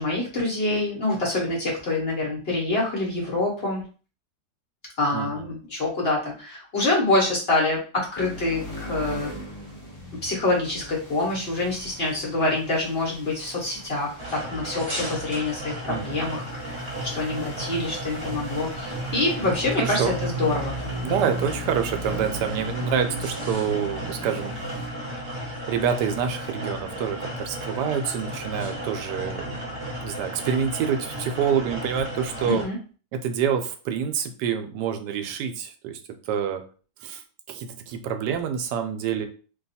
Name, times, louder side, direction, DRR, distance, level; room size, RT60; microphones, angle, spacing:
voice 1, 0.0-3.8 5.0-9.3 10.2-16.9 17.1-20.8 32.4-32.8, left 2 dB, 45° left, -3 dB, 1.0 m, -26 dB
voice 2, 5.1-5.5 15.9-16.2 19.4-20.1 21.0-24.6 25.7-29.7 30.0-32.7 33.1-36.0 36.3-36.6 37.0-37.2 37.5-39.3, right 8 dB, 85° right, 7 dB, 1.2 m, -27 dB
sound 1, 8.2-24.9, right 2 dB, 20° left, 0.8 m, -37 dB
sound 2, 14.2-32.6, equal, 20° right, 1.2 m, -34 dB
2.8 x 2.3 x 4.1 m, 0.38 s
omnidirectional pair, 1.8 m